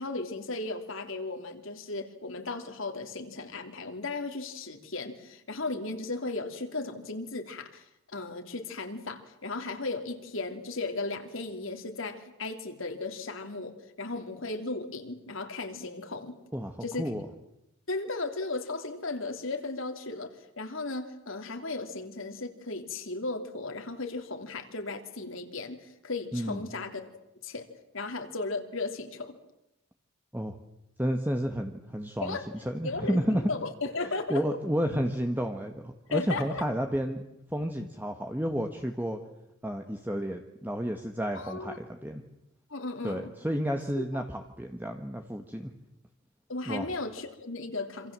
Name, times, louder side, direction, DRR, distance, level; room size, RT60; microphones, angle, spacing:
voice 1, 0.0-7.8 8.1-16.4 16.8-17.1 17.9-27.1 27.4-27.7 27.9-29.4 32.2-32.4 32.8-34.6 36.1-36.6 41.3-41.8 42.7-43.3 43.9-44.2 46.5-48.1, left 3 dB, 65° left, 5 dB, 3.1 m, -36 dB
voice 2, 16.5-17.2 26.3-26.6 30.3-30.6 31.0-33.4 34.3-37.2 37.5-39.2 39.6-42.2 43.0-45.7 46.7-46.9, equal, 10° right, 5 dB, 1.4 m, -31 dB
26.5 x 26.5 x 7.6 m, 0.87 s
head